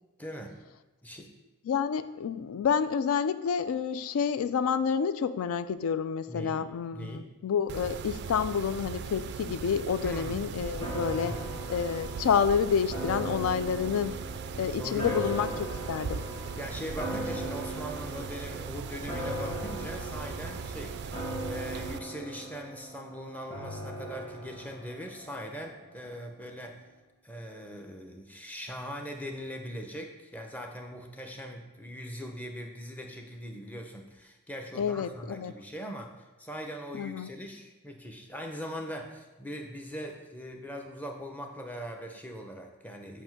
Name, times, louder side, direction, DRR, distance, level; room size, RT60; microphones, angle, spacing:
voice 1, 0.2-0.6 1.0-1.3 6.3-7.3 10.0-10.5 11.1-11.4 14.8-15.3 16.6-26.8 27.2-36.1 36.4-43.2, equal, 10° left, 2 dB, 0.6 m, -41 dB
voice 2, 1.7-11.3 11.7-14.3 14.6-16.2 34.8-35.5 37.0-37.3, left 7 dB, 70° left, 13 dB, 0.3 m, -29 dB
Mechanisms, 7.7-22.0, right 5 dB, 50° right, 0.3 m, -39 dB
sound 1, 10.8-26.1 26.5-26.6, equal, 25° left, 1.5 m, -39 dB
7.7 x 2.6 x 5.8 m, 1.1 s
head